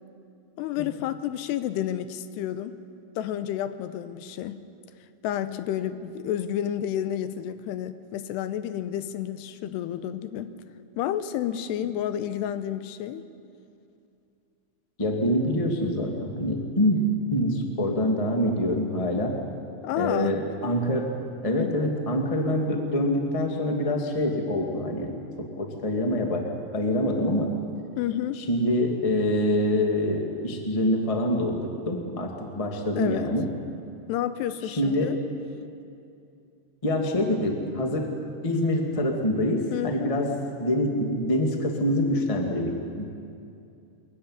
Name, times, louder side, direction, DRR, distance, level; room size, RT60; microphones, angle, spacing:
voice 1, 0.6-2.8 3.2-4.6 5.2-10.5 11.0-13.2 19.8-20.4 21.5-21.9 28.0-28.4 32.9-33.3 34.1-35.2 39.7-40.2, left 11 dB, 85° left, 12 dB, 2.8 m, -30 dB
voice 2, 15.0-17.1 17.3-19.3 20.0-21.1 21.4-26.4 26.7-27.5 28.3-33.5 34.6-35.1 36.8-38.1 38.4-40.3 40.6-43.0, left 1 dB, 35° left, 1 dB, 0.5 m, -25 dB
22.5 x 15.0 x 9.7 m, 2.6 s
omnidirectional pair, 4.8 m